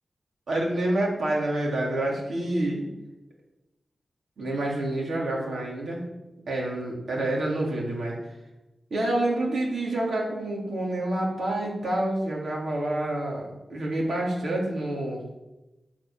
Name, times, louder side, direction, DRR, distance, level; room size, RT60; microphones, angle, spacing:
voice 1, 0.5-2.9 4.4-6.1 6.5-8.2 8.9-15.2, right 1 dB, 80° right, -3 dB, 3.9 m, -28 dB
8.5 x 8.1 x 7.4 m, 0.98 s
wide cardioid pair, 115°, 0 cm